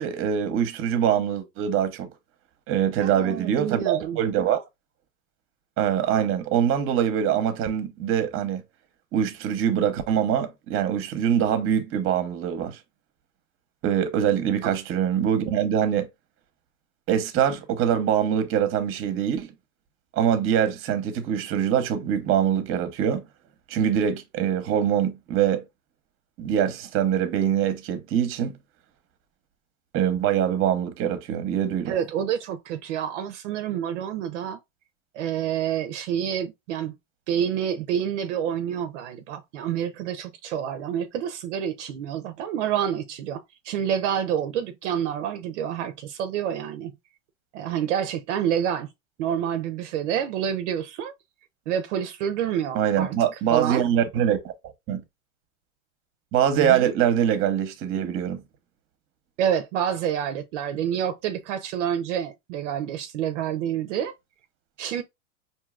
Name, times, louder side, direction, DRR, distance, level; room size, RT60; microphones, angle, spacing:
voice 1, 0.0-2.1 2.7-4.6 5.8-8.6 9.1-12.8 13.8-16.1 17.1-19.5 20.1-23.2 23.7-25.6 26.4-28.6 29.9-32.0 52.7-54.5 54.9-55.0 56.3-58.4, right 9 dB, 35° right, 0.8 m, -23 dB
voice 2, 3.0-4.2 14.6-14.7 31.9-34.6 35.1-36.9 37.3-46.9 47.5-48.9 49.2-51.1 51.7-53.1 53.5-53.9 56.6-56.9 59.4-64.1 64.8-65.0, right 9 dB, 70° right, 0.6 m, -28 dB
4.6 x 2.7 x 2.4 m
hypercardioid pair, 115°, 38 cm